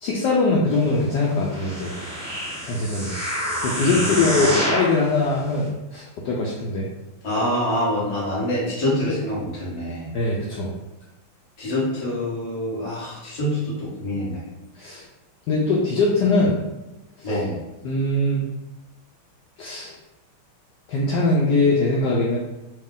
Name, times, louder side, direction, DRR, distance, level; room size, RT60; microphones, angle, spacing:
voice 1, 0.0-1.9 2.6-3.1 3.6-6.9 10.1-10.7 14.8-15.0 15.5-16.6 17.2-17.3 17.8-18.4 19.6-19.9 20.9-22.4, left 2 dB, 80° left, -3 dB, 1.0 m, -22 dB
sound 1, 1.4-5.0 5.6-5.7, equal, 20° right, 1.2 m, -27 dB
voice 2, 3.9-4.6 7.2-10.1 11.6-14.4 17.2-17.6, left 1 dB, 30° left, -7 dB, 0.8 m, -26 dB
3.2 x 2.8 x 3.6 m, 0.99 s
omnidirectional pair, 2.3 m